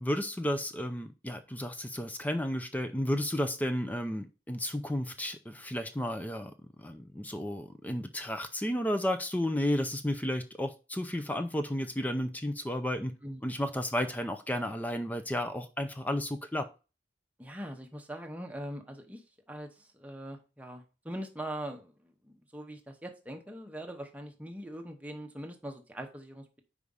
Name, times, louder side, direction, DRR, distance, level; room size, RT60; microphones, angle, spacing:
voice 1, 0.0-6.5 6.8-13.2 13.4-16.7, left 1 dB, 10° left, 0.4 m, -32 dB
voice 2, 17.4-19.2 19.5-26.6, right 1 dB, 10° right, 0.9 m, -42 dB
5.0 x 4.9 x 5.4 m
head